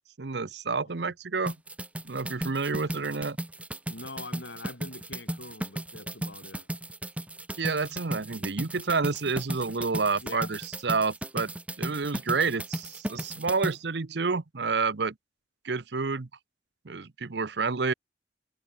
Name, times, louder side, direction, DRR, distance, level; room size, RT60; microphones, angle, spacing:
voice 1, 0.2-1.5 2.0-3.4 7.6-11.5 11.8-15.1 15.6-16.3 16.8-17.9, right 4 dB, 70° right, 0.8 m, -29 dB
sound 1, 1.5-13.7, right 1 dB, 5° right, 0.8 m, -35 dB
voice 2, 2.7-3.0 3.9-6.7 10.2-10.5, left 2 dB, 85° left, 6.8 m, -44 dB
head